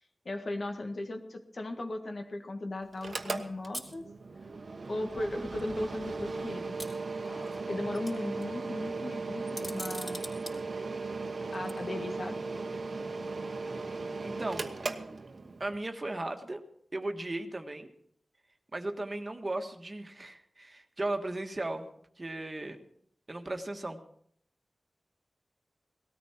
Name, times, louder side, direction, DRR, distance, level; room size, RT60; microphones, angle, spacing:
voice 1, 0.3-4.0 4.9-6.8 7.2-10.3 11.2-12.4, left 2 dB, 60° left, 4 dB, 1.8 m, -37 dB
Mechanical fan, 2.9-15.8, right 3 dB, 60° right, 1.1 m, -37 dB
sound 1, 3.7-3.9 5.1-5.2 5.6-5.7 6.8-7.6 7.9-8.4 9.5-10.5 11.5-11.7, equal, 10° left, 3.8 m, -42 dB
voice 2, 14.2-14.7 15.6-16.6 16.9-17.9 18.7-21.9 22.2-22.8 23.3-24.0, right 2 dB, 35° right, 5 dB, 1.5 m, -36 dB
18.5 x 13.5 x 4.4 m, 0.65 s
cardioid pair, 60°, 0 cm